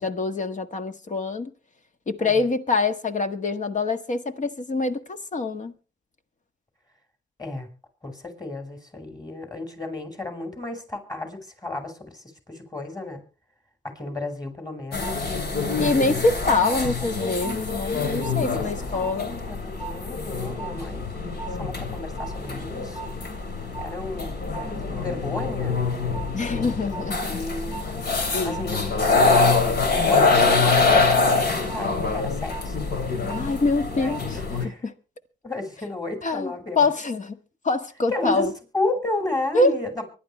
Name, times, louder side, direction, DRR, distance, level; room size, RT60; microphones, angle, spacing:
voice 1, 0.0-1.5 2.1-5.7 15.8-19.3 26.3-27.4 28.3-28.7 33.3-34.9 36.2-37.4 37.6-38.5 39.5-39.8, left 3 dB, 40° left, 1.7 m, -25 dB
voice 2, 8.0-11.9 12.5-13.2 13.8-16.2 16.7-17.3 18.5-18.6 18.9-19.1 19.6-21.0 21.6-23.0 23.8-25.8 26.5-27.9 28.4-29.8 30.0-32.8 33.9-34.8 35.4-36.8 38.1-38.5 38.7-39.9, left 2 dB, 20° left, 5.5 m, -33 dB
sound 1, 14.9-34.7, left 3 dB, 55° left, 3.2 m, -25 dB
24.0 x 11.5 x 3.3 m
cardioid pair, 90°, 20 cm